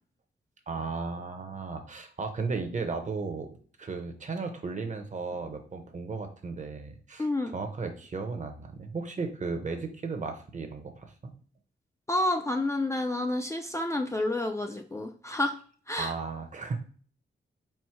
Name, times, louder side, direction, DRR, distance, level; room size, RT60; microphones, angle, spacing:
voice 1, 0.7-3.5 3.8-7.3 7.5-11.1 16.0-16.8, right 4 dB, 40° right, 5 dB, 0.7 m, -35 dB
voice 2, 7.2-7.5 12.1-15.6 15.9-16.1, left 1 dB, 15° left, 4 dB, 0.4 m, -29 dB
4.4 x 2.1 x 4.5 m, 0.43 s
wide cardioid pair, 130°, 19 cm